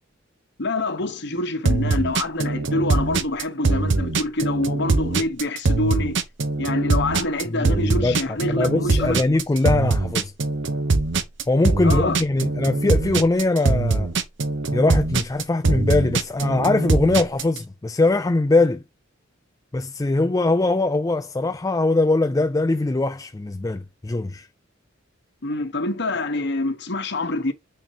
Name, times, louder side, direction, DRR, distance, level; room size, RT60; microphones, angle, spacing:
voice 1, 0.6-6.2 6.6-9.2 11.8-12.2 25.4-27.5, left 2 dB, 60° left, 1.2 m, -26 dB
sound 1, 1.6-17.6, right 3 dB, 60° right, 0.9 m, -22 dB
voice 2, 7.5-10.3 11.5-14.1 14.7-18.8 19.7-24.5, left 2 dB, 15° left, 0.4 m, -22 dB
8.9 x 4.3 x 2.9 m
head